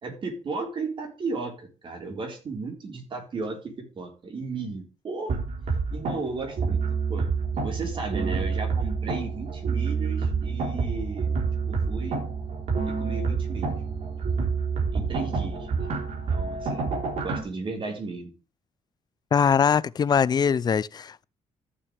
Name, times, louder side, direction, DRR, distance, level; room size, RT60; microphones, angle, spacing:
voice 1, 0.0-5.4 5.9-6.8 7.1-7.3 7.6-11.4 11.7-12.2 12.8-13.7 14.3-14.5 14.9-15.9 16.3-16.9 17.2-18.3, right 4 dB, 40° right, 3.9 m, -35 dB
sound 1, 5.3-17.4, right 5 dB, 60° right, 3.4 m, -28 dB
voice 2, 19.3-21.2, left 7 dB, 35° left, 0.4 m, -22 dB
14.5 x 6.7 x 3.3 m
cardioid pair, 135°, 13 cm